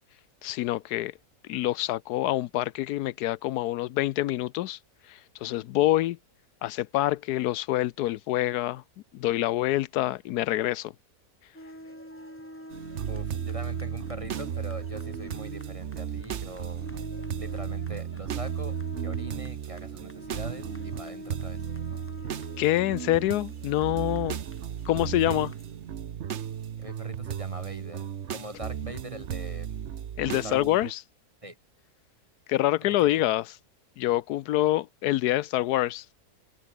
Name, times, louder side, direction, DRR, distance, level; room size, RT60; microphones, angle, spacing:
voice 1, 0.4-1.1 1.5-4.8 5.1-6.2 6.6-8.8 9.1-10.9 22.6-24.4 24.9-25.5 30.2-31.0 32.5-33.5 34.0-36.0, left 15 dB, 85° left, 1.1 m, -26 dB
sound 1, 11.5-25.7, equal, 5° left, 7.6 m, -44 dB
sound 2, 12.7-30.9, right 9 dB, 55° right, 1.0 m, -35 dB
voice 2, 13.1-16.9 17.4-21.6 25.3-25.5 26.8-29.8 30.3-30.7 31.4-31.6 32.8-33.2, right 1 dB, 20° right, 4.6 m, -42 dB
omnidirectional pair, 1.6 m